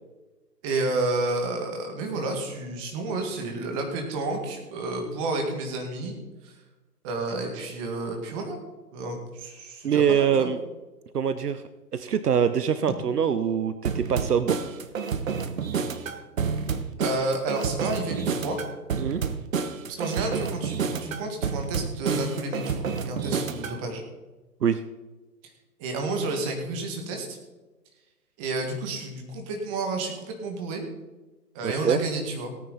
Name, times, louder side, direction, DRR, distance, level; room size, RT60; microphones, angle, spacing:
voice 1, 0.6-6.1 6.4-6.5 7.0-8.6 8.9-10.5 17.0-18.6 20.0-24.0 25.8-27.4 28.4-30.8 31.5-32.5, right 2 dB, 20° right, 3 dB, 2.0 m, -30 dB
voice 2, 9.8-10.6 11.1-11.6 11.9-14.6 19.0-19.2 24.6-24.8 31.6-32.0, right 7 dB, 70° right, 12 dB, 0.8 m, -24 dB
sound 1, 13.8-23.8, right 6 dB, 55° right, 1.2 m, -29 dB
17.5 x 9.2 x 4.1 m, 1.2 s
figure-of-eight pair, 145°, 49 cm